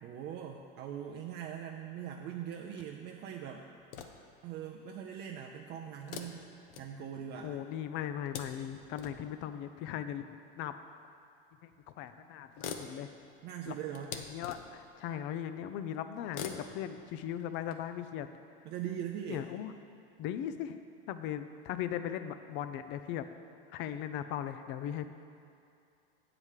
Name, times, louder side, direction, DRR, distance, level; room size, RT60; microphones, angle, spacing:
voice 1, 0.0-3.7 4.4-6.4 6.8-7.6 13.4-14.2 18.6-19.5, right 9 dB, 35° right, 0 dB, 0.5 m, -41 dB
sound 1, 3.8-4.4 6.0-7.4 8.0-9.4 10.5-10.6 11.7-11.8 12.1-12.2 12.4-14.9 16.2-17.7, left 7 dB, 70° left, 0.8 m, -45 dB
voice 2, 7.4-10.3 10.6-10.8 11.6-13.1 13.7-13.8 14.1-18.3 19.3-19.7 20.2-20.8 21.1-23.3 23.7-25.1, left 10 dB, 40° left, 10 dB, 0.4 m, -38 dB
7.9 x 4.9 x 7.3 m, 2.5 s
supercardioid pair, 145°, 29 cm